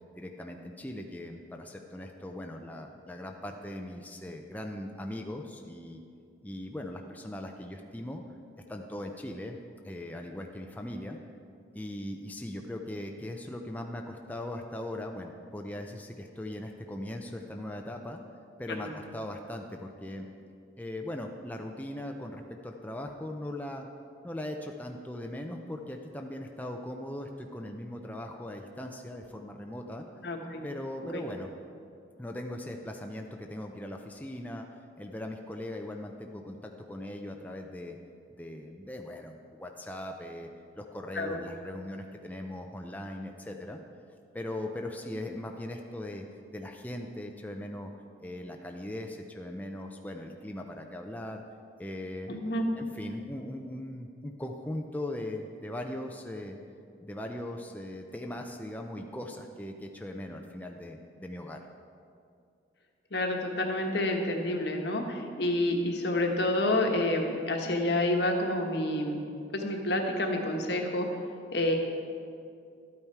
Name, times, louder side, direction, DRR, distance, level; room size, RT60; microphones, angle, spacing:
voice 1, 0.2-6.0 6.4-8.2 8.7-9.6 9.8-11.2 11.7-18.2 18.6-20.3 20.8-23.9 24.2-30.1 30.6-31.5 32.2-38.0 38.4-43.8 44.3-46.3 46.5-47.9 48.2-51.4 51.8-52.4 52.8-56.6 57.0-61.6, left 1 dB, 10° left, 2 dB, 0.5 m, -39 dB
voice 2, 30.2-30.6 31.1-31.3 41.1-41.4 52.3-52.6 63.1-69.2 69.5-71.1 71.5-71.7, left 1 dB, 65° left, 2 dB, 1.3 m, -29 dB
12.5 x 8.9 x 4.7 m, 2.4 s
head